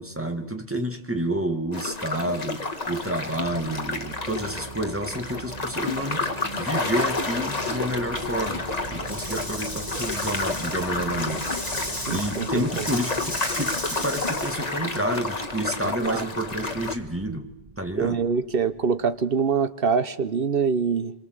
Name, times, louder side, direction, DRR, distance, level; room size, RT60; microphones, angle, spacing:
voice 1, 0.0-11.5 12.1-17.5 17.8-18.2, right 1 dB, 15° right, 4 dB, 2.3 m, -29 dB
sound 1, 1.7-16.9, left 3 dB, 40° left, 1.9 m, -30 dB
sound 2, 3.1-19.3, right 5 dB, 30° right, 1.5 m, -42 dB
Rattle / Rattle (instrument), 9.0-14.6, left 1 dB, 20° left, 4.7 m, -35 dB
voice 2, 12.1-12.9 16.0-16.3 18.0-21.1, right 6 dB, 65° right, 12 dB, 1.4 m, -24 dB
26.5 x 22.5 x 8.1 m, 0.89 s
omnidirectional pair, 1.0 m